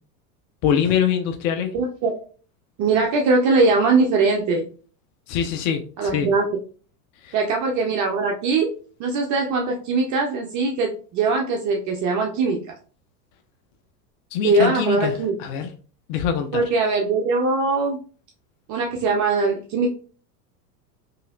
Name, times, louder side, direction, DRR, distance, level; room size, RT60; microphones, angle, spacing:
voice 1, 0.6-1.7 5.3-6.3 7.2-7.4 14.3-15.7 16.1-16.7, left 8 dB, 50° left, 6 dB, 0.5 m, -24 dB
voice 2, 1.7-2.2 2.8-4.7 6.0-6.4 7.3-8.7 9.0-12.6 14.4-15.3 16.5-18.0 18.7-19.9, right 3 dB, 40° right, 1 dB, 0.5 m, -21 dB
3.1 x 2.8 x 2.4 m, 0.40 s
hypercardioid pair, 100°, 49 cm